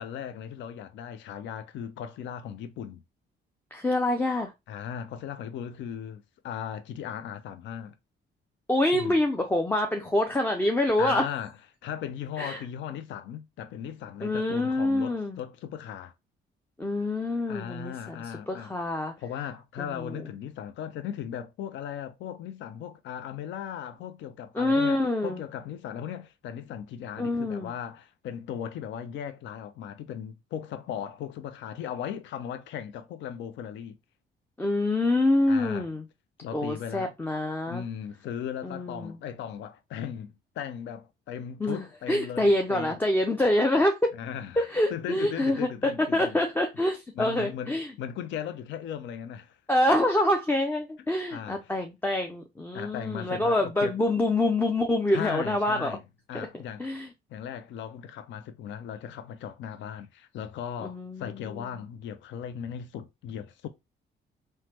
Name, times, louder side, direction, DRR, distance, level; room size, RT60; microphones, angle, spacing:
voice 1, 0.0-3.0 4.7-7.9 8.9-9.1 11.0-11.5 11.8-16.1 17.5-18.7 19.2-34.0 35.5-35.9 36.4-37.1 37.7-43.0 44.1-46.4 47.1-49.6 51.3-51.7 52.7-53.9 55.1-56.0 56.3-57.0 57.3-63.7, left 9 dB, 70° left, 0.4 m, -37 dB
voice 2, 3.7-4.5 8.7-11.2 12.4-12.6 14.2-15.4 16.8-19.1 19.8-20.2 24.5-25.4 27.2-27.7 34.6-36.0 36.5-37.8 38.6-39.2 41.6-44.0 44.6-47.9 49.7-56.0 56.3-56.5 56.8-57.1 60.8-61.7, left 1 dB, 10° left, 0.4 m, -26 dB
3.1 x 2.1 x 2.9 m
cardioid pair, 90°, 20 cm